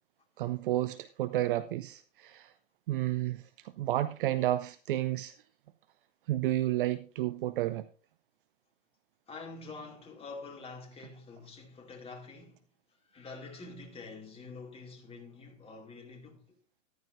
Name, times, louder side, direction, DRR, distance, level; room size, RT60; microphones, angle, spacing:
voice 1, 0.4-2.5 2.9-5.3 6.3-7.8, right 14 dB, 45° right, 0.6 m, -31 dB
voice 2, 9.3-12.7 13.0-16.6, left 3 dB, 15° left, 2.5 m, -46 dB
14.0 x 12.0 x 2.6 m
figure-of-eight pair, 110°, 37 cm